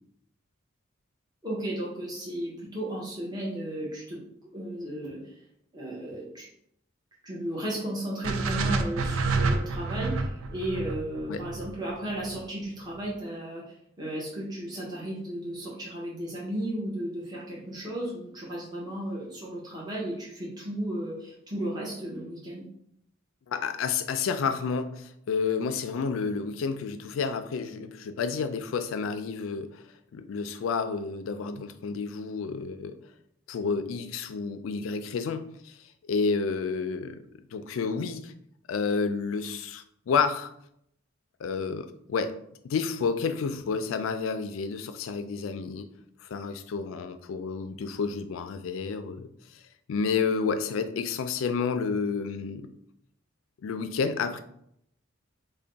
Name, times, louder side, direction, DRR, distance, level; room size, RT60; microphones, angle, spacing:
voice 1, 1.4-4.2 4.5-5.2 5.7-6.5 7.2-13.6 14.0-22.6, right 1 dB, 20° right, -5 dB, 0.9 m, -34 dB
sound 1, 8.2-12.4, right 3 dB, 90° right, 0.4 m, -29 dB
voice 2, 23.5-29.8 30.1-33.0 33.5-35.8 36.1-37.2 37.5-38.3 38.7-40.5 41.4-42.4 42.6-45.9 46.2-49.3 49.9-52.7 53.6-54.4, left 5 dB, 75° left, 10 dB, 0.4 m, -30 dB
3.3 x 2.2 x 3.9 m, 0.73 s
head